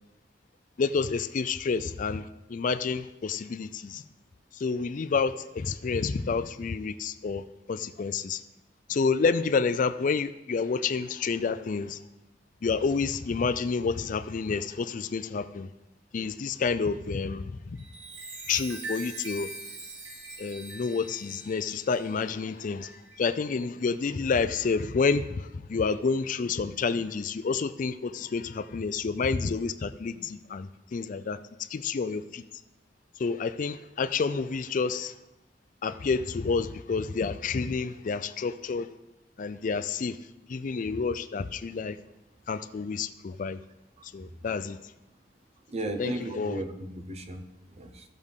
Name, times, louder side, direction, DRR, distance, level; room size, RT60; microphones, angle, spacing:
voice 1, 0.8-4.0 4.5-7.4 7.7-8.4 8.9-12.0 12.6-15.7 16.1-17.8 18.5-19.5 20.4-22.9 23.2-31.4 31.7-32.4 33.2-35.1 35.8-38.9 39.4-40.2 40.5-42.0 42.5-43.6 44.0-44.8 46.0-46.6, left 5 dB, 45° left, 13 dB, 0.4 m, -29 dB
Chime, 17.7-23.7 24.2-24.5, right 2 dB, 90° right, 1.4 m, -43 dB
voice 2, 45.7-47.4 47.8-48.0, right 1 dB, 35° right, 6 dB, 0.8 m, -35 dB
15.0 x 6.5 x 3.6 m, 0.96 s
head